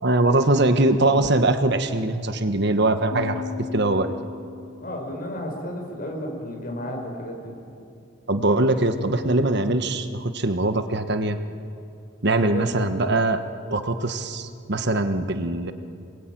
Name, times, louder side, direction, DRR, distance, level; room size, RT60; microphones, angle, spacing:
voice 1, 0.0-3.4 3.7-4.1 8.3-11.4 12.2-13.4 13.7-15.7, right 2 dB, 60° right, 8 dB, 1.4 m, -22 dB
sound 1, 3.1-5.5, left 7 dB, 85° left, 1.8 m, -37 dB
voice 2, 4.8-7.5 12.2-12.7, equal, 45° left, 1 dB, 5.8 m, -33 dB
27.5 x 21.0 x 9.3 m, 2.5 s
head